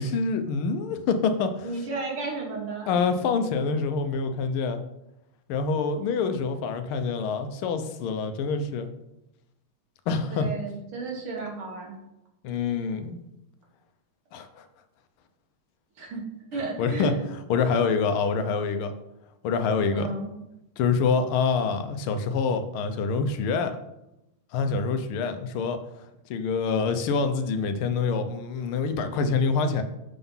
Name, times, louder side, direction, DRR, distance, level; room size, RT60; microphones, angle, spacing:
voice 1, 0.0-1.7 2.9-4.8 5.5-8.9 10.1-10.5 12.4-13.2 14.3-14.6 16.8-17.1 17.5-18.9 19.4-20.1 20.8-23.7 24.5-25.8 26.3-29.8, left 5 dB, 85° left, 8 dB, 1.6 m, -26 dB
voice 2, 1.6-3.0 10.3-12.0 16.0-16.2 16.5-17.1 19.9-20.3, right 3 dB, 80° right, -1 dB, 2.4 m, -33 dB
6.8 x 3.8 x 5.5 m, 0.89 s
omnidirectional pair, 2.3 m